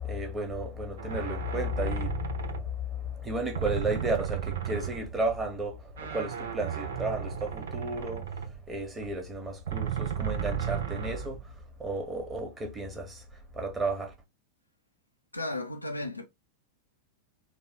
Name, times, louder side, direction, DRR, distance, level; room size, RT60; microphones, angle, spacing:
voice 1, 0.0-14.1, right 1 dB, 15° right, 1.3 m, -33 dB
sound 1, 1.0-3.2 3.5-5.4 5.9-9.1 9.7-11.6, right 8 dB, 60° right, 0.7 m, -34 dB
voice 2, 15.3-16.3, left 2 dB, 85° left, 0.6 m, -34 dB
4.0 x 2.4 x 3.7 m
figure-of-eight pair, 90°, 0 cm